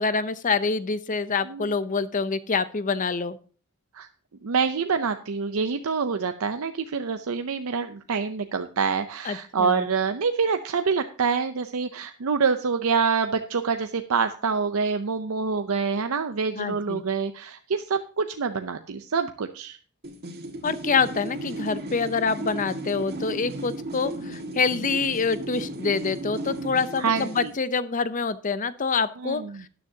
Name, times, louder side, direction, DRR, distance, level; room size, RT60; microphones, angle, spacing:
voice 1, 0.0-3.4 9.2-9.9 16.6-17.0 20.6-29.7, left 4 dB, 35° left, 14 dB, 0.6 m, -26 dB
voice 2, 4.4-19.8 27.0-27.5 29.2-29.6, right 5 dB, 70° right, 8 dB, 0.6 m, -26 dB
sound 1, 20.0-27.5, right 1 dB, 45° right, 1.8 m, -35 dB
13.0 x 10.0 x 2.8 m, 0.40 s
head